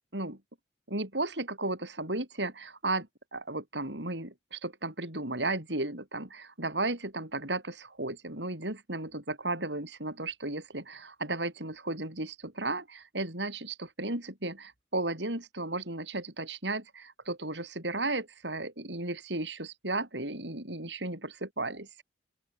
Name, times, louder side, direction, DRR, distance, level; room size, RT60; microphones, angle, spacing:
voice 1, 0.9-22.0, right 2 dB, 75° right, 7.5 m, -34 dB
open air
head